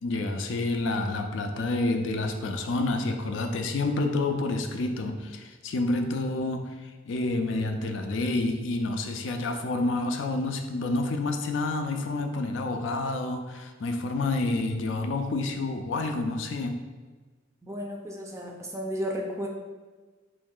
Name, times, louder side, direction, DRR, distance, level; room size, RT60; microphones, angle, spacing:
voice 1, 0.0-16.8, left 2 dB, 70° left, 5 dB, 0.4 m, -29 dB
voice 2, 17.6-19.5, equal, 15° right, 0 dB, 0.4 m, -33 dB
3.0 x 2.7 x 3.7 m, 1.3 s
head